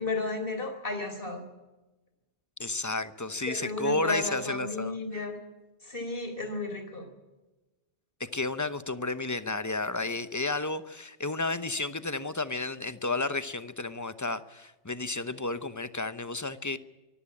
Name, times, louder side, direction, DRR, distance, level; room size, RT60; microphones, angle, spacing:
voice 1, 0.0-1.4 3.5-5.4 5.8-7.1, left 3 dB, 50° left, 7 dB, 4.3 m, -33 dB
voice 2, 2.6-5.0 8.2-16.8, left 3 dB, 15° left, 12 dB, 0.8 m, -32 dB
24.0 x 14.5 x 8.7 m, 1.1 s
omnidirectional pair, 1.2 m